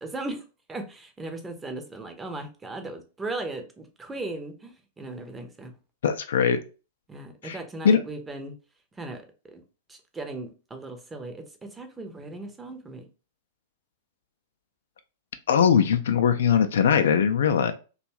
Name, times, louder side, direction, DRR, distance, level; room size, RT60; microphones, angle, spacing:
voice 1, 0.0-5.7 7.1-8.5 9.0-9.2 9.5-9.6 9.9-13.1, right 2 dB, 15° right, 6 dB, 0.6 m, -37 dB
voice 2, 6.0-6.6 7.4-7.6 7.8-8.0 15.5-17.7, left 7 dB, 65° left, 8 dB, 0.3 m, -21 dB
2.6 x 2.2 x 2.9 m, 0.33 s
figure-of-eight pair, 100°, 0 cm